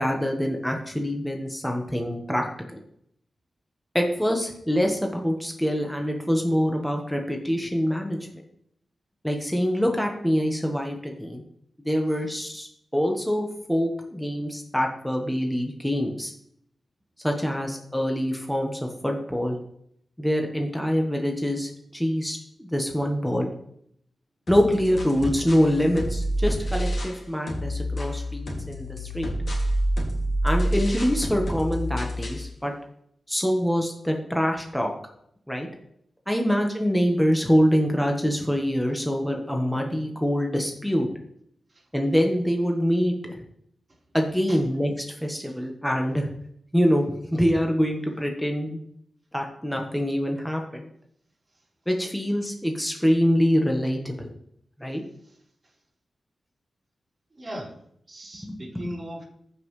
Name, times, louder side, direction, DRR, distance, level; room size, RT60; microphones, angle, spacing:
voice 1, 0.0-2.5 3.9-8.2 9.2-11.4 11.8-16.3 17.2-19.6 20.2-23.5 24.5-29.3 30.4-32.7 33.3-34.9 35.5-35.7 36.3-41.1 41.9-43.3 44.1-46.3 46.7-48.8 49.3-50.9 51.9-54.3 54.8-55.0 58.5-58.8, equal, 5° left, 2 dB, 1.3 m, -25 dB
sound 1, 24.5-27.2 27.5-32.5, equal, 55° left, 2.3 m, -28 dB
voice 2, 57.3-57.8 58.1-59.2, equal, 35° right, -4 dB, 4.1 m, -39 dB
14.5 x 5.5 x 3.2 m, 0.72 s
cardioid pair, 70°, 0 cm